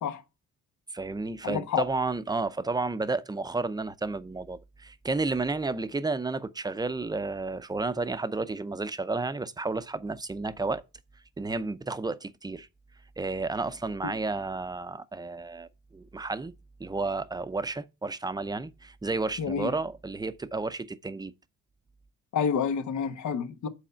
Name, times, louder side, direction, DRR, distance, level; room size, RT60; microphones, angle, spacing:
voice 1, 0.9-10.8 11.4-12.7 13.2-16.5 16.8-21.3, right 3 dB, 15° right, 0.6 m, -32 dB
voice 2, 1.4-1.9 14.0-14.1 19.4-19.7 22.3-23.7, left 7 dB, 70° left, 1.1 m, -29 dB
7.6 x 4.2 x 5.6 m
cardioid pair, 90°, 30 cm